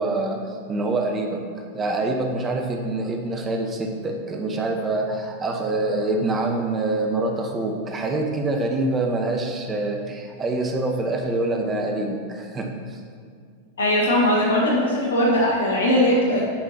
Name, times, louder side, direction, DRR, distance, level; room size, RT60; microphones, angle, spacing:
voice 1, 0.0-1.4 1.7-13.0, right 2 dB, 20° right, 3 dB, 0.9 m, -25 dB
voice 2, 13.8-16.4, left 1 dB, 65° left, -3 dB, 1.1 m, -20 dB
9.7 x 5.4 x 2.8 m, 2.2 s
figure-of-eight pair, 90°, 0 cm